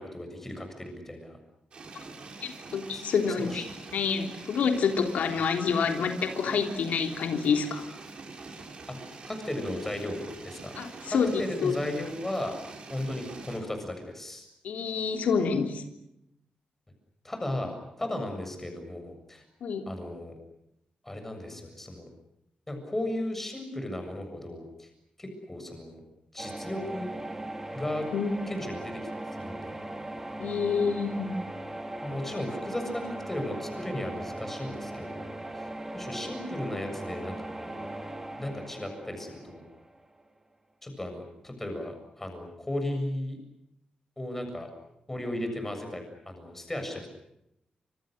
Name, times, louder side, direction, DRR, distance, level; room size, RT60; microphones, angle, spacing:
voice 1, 0.0-1.4 2.9-3.0 3.4-3.7 6.5-6.6 8.9-9.0 9.3-10.7 11.1-12.6 12.9-14.5 17.2-19.4 19.9-20.3 21.0-22.1 22.7-24.9 25.2-26.0 26.3-27.1 27.7-28.1 28.5-29.8 32.0-37.9 38.4-39.6 40.8-43.4 44.2-44.7 45.1-47.1, left 1 dB, 10° left, 5 dB, 7.3 m, -35 dB
sound 1, 1.7-13.6, right 3 dB, 45° right, 7.1 m, -45 dB
voice 2, 2.4-3.7 3.9-7.9 10.8-11.7 14.6-15.8 19.6-19.9 28.1-28.3 30.4-31.3, left 6 dB, 85° left, 4 dB, 3.4 m, -27 dB
sound 2, 26.4-40.2, right 1 dB, 15° right, 3.4 m, -39 dB
29.0 x 27.0 x 6.6 m, 0.82 s
wide cardioid pair, 160°, 2 cm